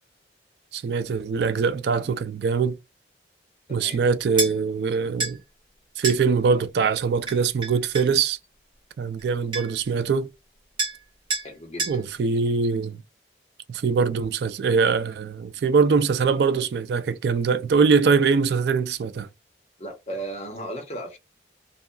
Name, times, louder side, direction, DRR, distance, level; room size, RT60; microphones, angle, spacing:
voice 1, 0.7-2.8 3.7-5.4 6.0-8.4 9.0-10.3 11.9-13.0 13.7-19.3, right 5 dB, 70° right, 0.3 m, -22 dB
voice 2, 3.7-4.6 11.4-12.0 19.8-21.2, right 1 dB, 35° left, 1.0 m, -36 dB
sound 1, 4.4-4.5 5.2-5.4 6.0-6.2 7.3-8.1 9.2-9.3 9.5-9.9 10.8-11.0 11.3-11.5 11.8-12.0, right 3 dB, 30° right, 1.0 m, -28 dB
2.7 x 2.3 x 2.2 m
head